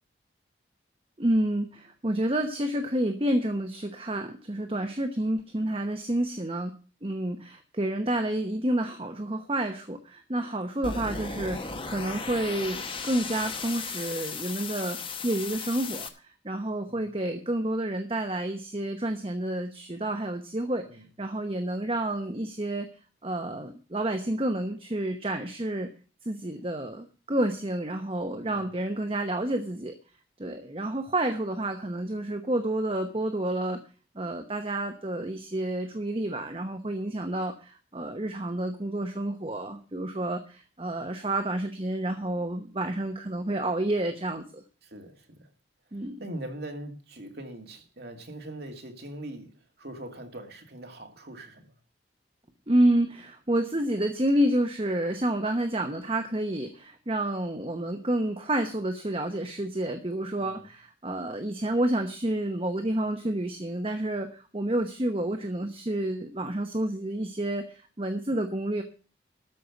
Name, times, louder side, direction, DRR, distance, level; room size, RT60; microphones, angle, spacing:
voice 1, 1.2-6.7 7.0-16.1 16.4-22.9 23.2-25.9 26.2-29.9 30.4-33.8 34.1-44.6 45.9-46.2 52.7-68.8, right 1 dB, 30° right, 1.0 m, -29 dB
sound 1, 10.8-16.1, left 4 dB, 25° left, 1.0 m, -36 dB
voice 2, 44.8-45.5 45.9-51.7 60.4-60.7, right 1 dB, 55° right, 2.3 m, -42 dB
13.5 x 5.5 x 8.2 m
head